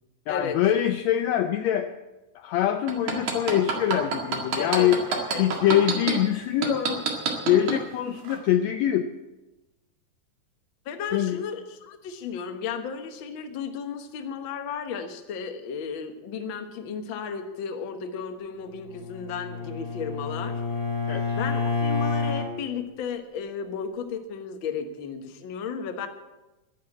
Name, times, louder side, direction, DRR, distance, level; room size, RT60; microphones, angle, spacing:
voice 1, 0.3-1.9 2.3-5.1 5.4-7.1 7.4-9.1 11.1-11.4 21.1-21.4, left 11 dB, 85° left, 7 dB, 1.5 m, -24 dB
sound 1, 2.9-6.1 6.6-7.8 8.3-8.4, right 6 dB, 60° right, 3.2 m, -26 dB
voice 2, 4.6-5.4 10.8-20.6 21.3-26.1, left 6 dB, 60° left, 7 dB, 1.3 m, -34 dB
Bowed string instrument, 18.7-22.5, left 4 dB, 25° left, 2.7 m, -29 dB
12.0 x 11.0 x 8.6 m, 1.0 s
omnidirectional pair, 3.9 m